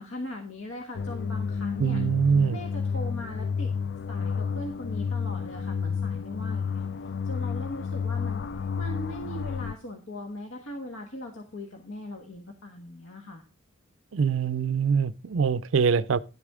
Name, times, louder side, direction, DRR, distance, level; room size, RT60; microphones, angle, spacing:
voice 1, 0.0-2.0 2.5-3.7 4.1-8.4 8.8-13.4, left 1 dB, 70° left, 1.4 m, -39 dB
sound 1, 0.9-9.7, left 6 dB, 55° left, 0.4 m, -31 dB
voice 2, 1.8-2.6 14.1-16.2, right 6 dB, 65° right, 0.5 m, -24 dB
11.0 x 8.3 x 3.6 m
head